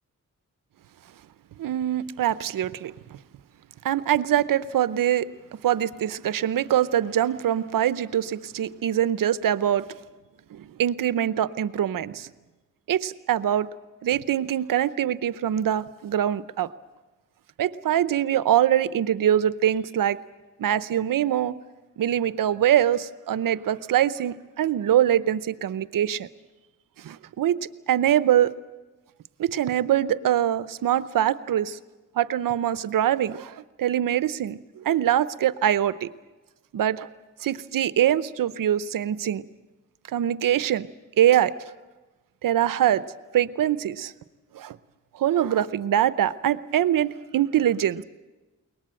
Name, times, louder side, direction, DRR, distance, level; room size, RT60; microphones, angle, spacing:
voice 1, 1.6-2.9 3.8-5.3 5.6-9.8 10.6-12.3 12.9-13.7 14.0-16.7 17.6-20.2 20.6-21.6 22.0-26.3 27.0-27.6 27.9-28.5 29.4-31.8 32.2-34.6 34.8-36.1 36.7-37.1 37.4-39.4 40.1-40.9 41.2-41.5 42.4-43.0 43.3-44.1 44.5-44.7 45.2-48.0, right 11 dB, 85° right, 16 dB, 0.8 m, -23 dB
22.0 x 19.0 x 8.8 m, 1.2 s
cardioid pair, 55°, 32 cm